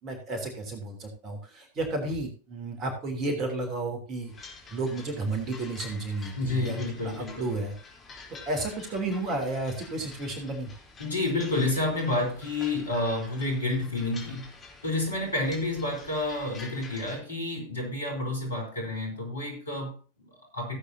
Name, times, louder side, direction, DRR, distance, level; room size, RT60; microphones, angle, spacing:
voice 1, 0.0-6.8 7.0-7.7 8.4-10.7, right 2 dB, 30° right, 4 dB, 3.3 m, -32 dB
sound 1, 4.3-17.2, left 4 dB, 20° left, 3.8 m, -48 dB
voice 2, 6.4-7.5 11.0-14.5 14.8-20.8, left 2 dB, 75° left, 2 dB, 4.3 m, -30 dB
16.5 x 8.4 x 2.9 m, 0.36 s
figure-of-eight pair, 90°, 0 cm